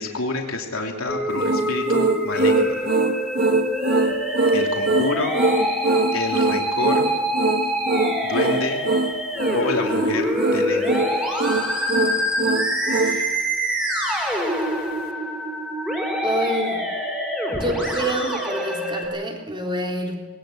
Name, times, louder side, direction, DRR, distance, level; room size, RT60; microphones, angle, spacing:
voice 1, 0.0-2.8 4.5-5.4 6.1-7.0 8.2-8.8 9.5-11.0, left 2 dB, 90° left, 1 dB, 3.0 m, -28 dB
Musical instrument, 1.1-19.1, equal, 5° right, 5.7 m, -25 dB
sound 1, 1.4-13.2, right 3 dB, 50° right, 1.4 m, -22 dB
voice 2, 16.2-16.8 17.5-20.2, right 1 dB, 25° right, 1 dB, 3.7 m, -27 dB
21.5 x 19.0 x 7.9 m, 1.2 s
head